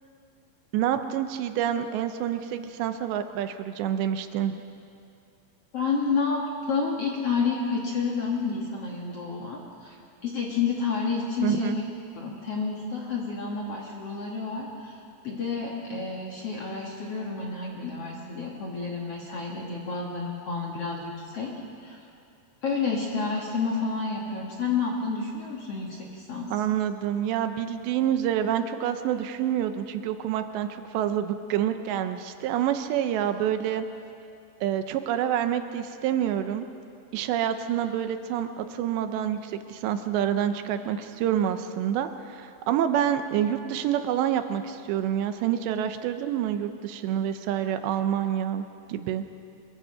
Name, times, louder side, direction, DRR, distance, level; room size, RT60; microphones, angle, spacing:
voice 1, 0.7-4.6 11.4-11.8 26.5-33.9 34.6-36.7 37.1-49.2, right 10 dB, 80° right, 8 dB, 2.9 m, -27 dB
voice 2, 5.7-10.0 10.2-11.8 12.2-15.0 15.2-21.5 21.8-22.0 22.6-26.5, left 4 dB, 45° left, -2 dB, 2.3 m, -30 dB
25.0 x 23.0 x 5.8 m, 2.5 s
omnidirectional pair, 5.2 m